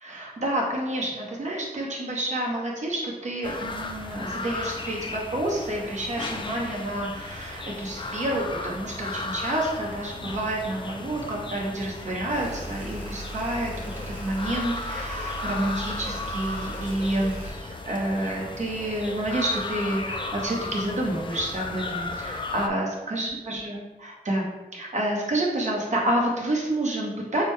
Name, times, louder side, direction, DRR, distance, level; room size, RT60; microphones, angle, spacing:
voice 1, 0.0-13.7 14.2-24.4 24.7-27.4, right 1 dB, 50° right, -2 dB, 1.0 m, -29 dB
sound 1, 3.4-22.7, left 3 dB, 30° left, 0.4 m, -35 dB
sound 2, 12.3-17.5, right 1 dB, 10° right, 1.0 m, -38 dB
6.1 x 2.2 x 3.2 m, 1.1 s
wide cardioid pair, 120°, 15 cm